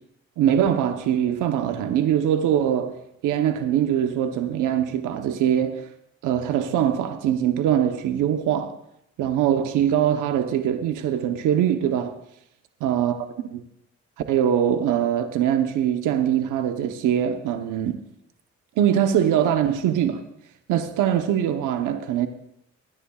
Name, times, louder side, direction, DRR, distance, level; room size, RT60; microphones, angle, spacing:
voice 1, 0.4-5.9 6.2-8.8 9.2-12.2 12.8-13.6 14.3-18.0 18.8-20.2 20.7-22.3, right 10 dB, 85° right, 0.9 m, -22 dB
23.5 x 10.0 x 2.4 m
cardioid pair, 90°, 30 cm